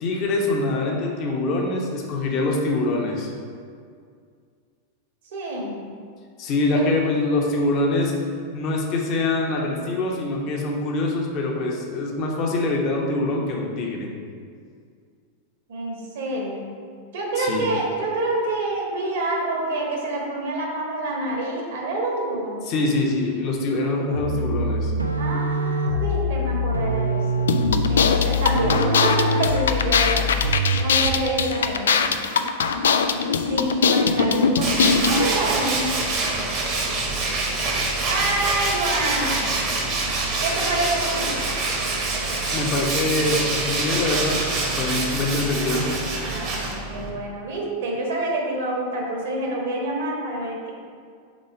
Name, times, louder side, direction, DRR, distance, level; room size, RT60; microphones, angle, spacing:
voice 1, 0.0-3.3 6.4-8.1 8.5-14.1 17.4-17.7 22.7-24.9 42.5-45.9, left 2 dB, 40° left, -1 dB, 1.0 m, -24 dB
voice 2, 5.3-5.7 6.7-6.9 15.7-16.6 17.1-22.7 25.2-27.5 27.9-30.3 30.8-32.1 33.5-36.1 38.0-39.7 40.4-41.3 46.2-50.7, right 2 dB, 55° right, -2 dB, 1.4 m, -27 dB
sound 1, 24.1-31.3, left 1 dB, 90° right, 0.4 m, -24 dB
sound 2, 27.5-35.3, left 5 dB, 65° left, 0.3 m, -21 dB
Tools, 34.6-47.1, right 3 dB, 35° right, 1.1 m, -25 dB
5.3 x 4.0 x 5.3 m, 2.1 s
figure-of-eight pair, 90°, 0 cm